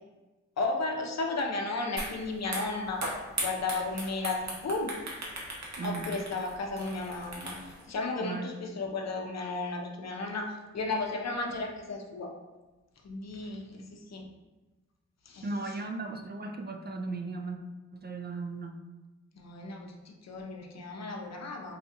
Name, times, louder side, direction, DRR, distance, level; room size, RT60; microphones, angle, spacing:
voice 1, 0.6-3.0 3.4-4.9 5.8-12.3 13.0-14.2 15.3-15.8 19.3-21.8, left 3 dB, 60° left, 1 dB, 0.6 m, -34 dB
sound 1, 2.0-2.1 2.4-7.8, right 1 dB, 65° right, 0.9 m, -37 dB
voice 2, 15.4-17.6 17.9-18.8, right 3 dB, 35° right, 4 dB, 0.4 m, -36 dB
4.0 x 2.3 x 2.8 m, 1.1 s
cardioid pair, 55°, 30 cm